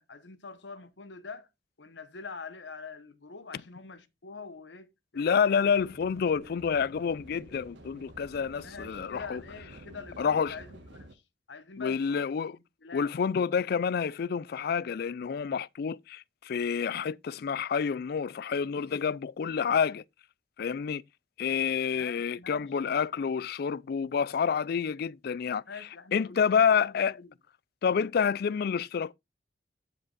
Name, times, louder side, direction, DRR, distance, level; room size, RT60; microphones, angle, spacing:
voice 1, 0.0-1.5 1.8-5.7 6.4-6.6 8.6-11.2 11.5-12.3 12.8-13.1 21.9-22.7 25.7-27.3, left 4 dB, 80° left, 1.1 m, -45 dB
voice 2, 5.2-9.4 10.2-10.6 11.8-12.6 12.9-20.0 20.6-21.0 21.4-25.6 26.1-27.2 27.8-29.1, left 6 dB, 60° left, 0.4 m, -28 dB
sound 1, 5.6-11.1, right 1 dB, 80° right, 1.5 m, -50 dB
9.7 x 5.1 x 4.0 m
head